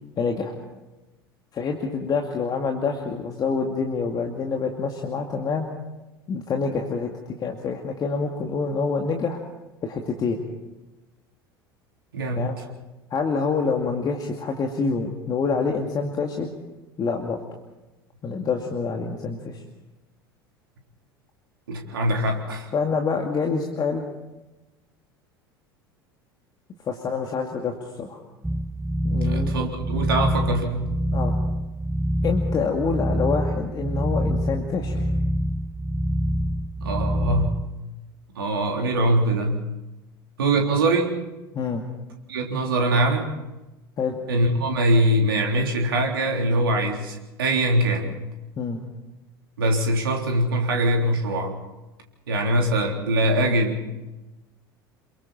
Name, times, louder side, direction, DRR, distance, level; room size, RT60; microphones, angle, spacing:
voice 1, 0.2-0.5 1.5-5.7 6.3-7.1 7.4-9.4 9.8-10.4 12.4-12.6 13.1-16.5 17.0-17.4 18.2-19.6 22.7-24.0 26.8-28.2 29.0-29.5 31.1-31.3 32.2-35.1 41.5-41.8 44.0-44.1 48.6-48.8, left 5 dB, 30° left, 3 dB, 2.4 m, -26 dB
voice 2, 12.1-12.5 21.7-22.7 29.2-30.9 36.8-37.7 38.4-39.6 40.4-41.2 42.3-43.3 44.3-48.1 49.6-51.6 52.3-53.9, right 1 dB, 70° right, 2 dB, 3.7 m, -23 dB
sound 1, 28.4-37.7, equal, 5° right, 0.9 m, -25 dB
28.5 x 22.5 x 4.3 m, 1.0 s
figure-of-eight pair, 70°, 12 cm